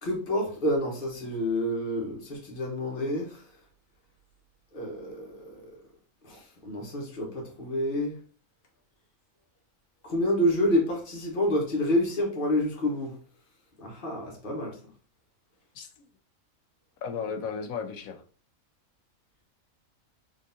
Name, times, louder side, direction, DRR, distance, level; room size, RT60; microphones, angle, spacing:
voice 1, 0.0-3.4 4.7-5.7 6.2-8.1 10.0-13.1 13.8-14.7, left 1 dB, 45° left, 1.2 m, -28 dB
voice 2, 17.0-18.2, left 6 dB, 90° left, 1.1 m, -34 dB
3.8 x 3.5 x 2.6 m
omnidirectional pair, 1.4 m